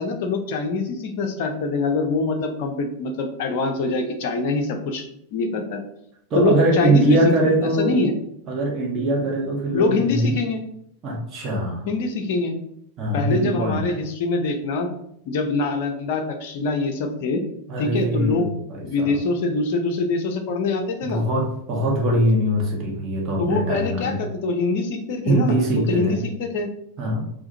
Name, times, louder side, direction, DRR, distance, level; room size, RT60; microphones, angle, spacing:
voice 1, 0.0-5.0 5.3-5.8 6.3-8.1 9.7-10.6 11.9-12.6 13.1-14.9 15.3-17.4 17.8-18.5 18.8-21.2 23.4-26.7, left 3 dB, 50° left, 5 dB, 0.6 m, -24 dB
voice 2, 6.3-8.0 8.5-10.3 11.0-11.8 13.0-13.8 17.7-19.2 21.0-24.2 25.2-26.2 27.0-27.3, right 1 dB, 30° right, -2 dB, 1.3 m, -22 dB
4.8 x 2.9 x 2.8 m, 0.74 s
figure-of-eight pair, 90°, 0 cm